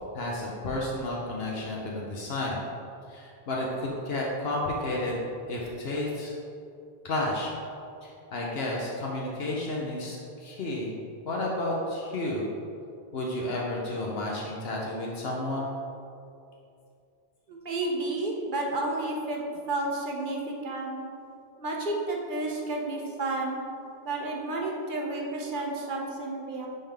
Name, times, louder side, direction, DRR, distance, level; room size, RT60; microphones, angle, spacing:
voice 1, 0.1-2.6 3.1-5.2 5.5-6.4 7.0-7.5 8.0-11.0 11.3-12.5 13.1-15.7, left 1 dB, 75° left, -3 dB, 1.1 m, -31 dB
voice 2, 17.5-19.4 19.7-20.9 21.6-23.6 24.0-26.7, right 2 dB, 55° right, 0 dB, 1.0 m, -31 dB
11.0 x 3.7 x 3.5 m, 2.5 s
omnidirectional pair, 1.0 m